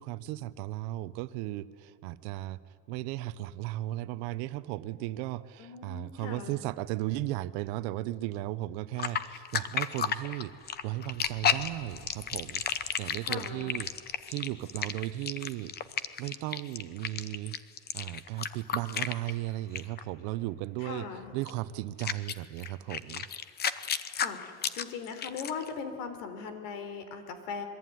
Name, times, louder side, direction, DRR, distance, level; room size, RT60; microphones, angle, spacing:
voice 1, 0.0-2.6 2.9-15.7 16.2-17.6 17.9-21.1 21.3-23.3, right 16 dB, 65° right, 15 dB, 1.0 m, -36 dB
voice 2, 5.6-6.6 13.2-13.8 20.8-21.3 23.9-27.7, left 5 dB, 75° left, 9 dB, 4.0 m, -40 dB
sound 1, 9.0-19.5 19.7-20.0 21.4-21.5 22.0-25.7, left 8 dB, 25° left, 0.8 m, -32 dB
26.5 x 22.5 x 9.4 m, 2.1 s
cardioid pair, 170°, 40 cm